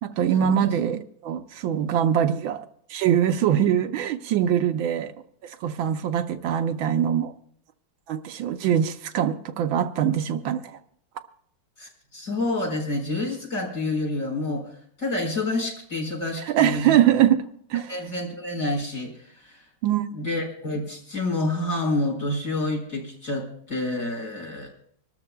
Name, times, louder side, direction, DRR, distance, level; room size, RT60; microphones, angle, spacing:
voice 1, 0.0-5.1 5.4-7.3 8.1-10.8 16.5-17.4 17.7-17.9 19.8-20.1, right 10 dB, 80° right, 8 dB, 1.5 m, -23 dB
voice 2, 11.8-14.7 15.0-17.0 17.9-19.6 20.1-24.7, left 2 dB, 40° left, -2 dB, 5.5 m, -28 dB
26.0 x 13.0 x 2.3 m, 0.65 s
omnidirectional pair, 2.2 m